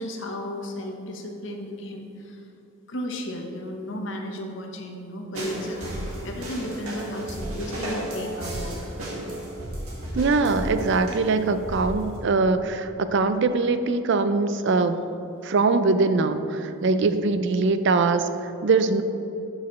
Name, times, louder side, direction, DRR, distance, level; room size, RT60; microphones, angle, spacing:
voice 1, 0.0-2.5 2.9-8.8 17.0-17.2, left 1 dB, 55° left, 2 dB, 0.9 m, -34 dB
sound 1, 5.3-12.2, right 1 dB, 90° right, 1.9 m, -33 dB
voice 2, 10.1-15.0 15.4-19.0, right 3 dB, 55° right, 10 dB, 0.4 m, -22 dB
11.5 x 6.2 x 3.1 m, 2.9 s
head